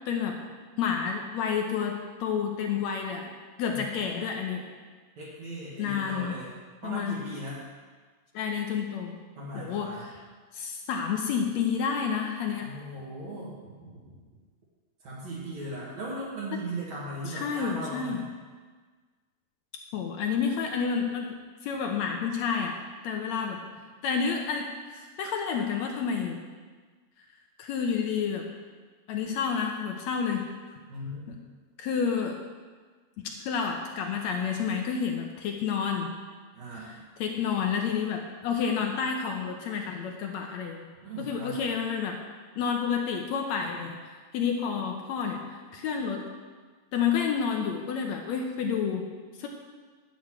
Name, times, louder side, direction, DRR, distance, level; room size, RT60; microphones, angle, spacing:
voice 1, 0.1-0.4 0.8-3.3 3.6-4.6 5.8-6.4 6.8-7.2 8.3-9.2 9.5-9.9 10.5-12.7 17.3-18.2 19.9-21.3 21.6-23.6 24.0-26.4 27.6-28.5 29.1-30.5 31.8-32.4 33.2-36.1 37.2-40.8 41.3-42.2 42.6-46.2 46.9-49.1 49.4-49.5, left 6 dB, 70° left, 2 dB, 1.8 m, -29 dB
voice 2, 5.2-6.5 6.8-7.6 9.4-10.1 12.6-14.2 15.0-18.3 30.9-31.4 36.5-37.0 41.0-41.7, right 1 dB, 65° right, -8 dB, 2.9 m, -38 dB
10.5 x 8.0 x 4.7 m, 1.5 s
omnidirectional pair, 3.7 m